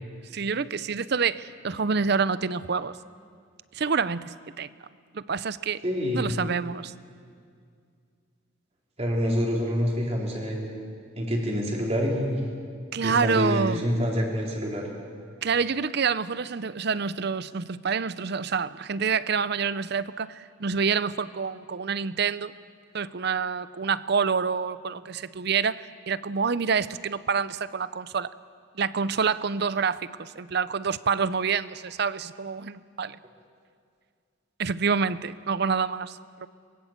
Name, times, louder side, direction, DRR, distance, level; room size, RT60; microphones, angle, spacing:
voice 1, 0.3-3.0 3.7-4.7 5.1-5.8 6.1-6.9 12.9-13.8 15.4-22.5 22.9-28.3 28.8-33.2 34.6-36.5, right 5 dB, 55° right, 16 dB, 0.6 m, -27 dB
voice 2, 5.8-6.3 9.0-10.8 11.1-12.4 13.0-14.9, equal, 30° right, -1 dB, 4.0 m, -27 dB
24.0 x 21.0 x 7.5 m, 2.2 s
head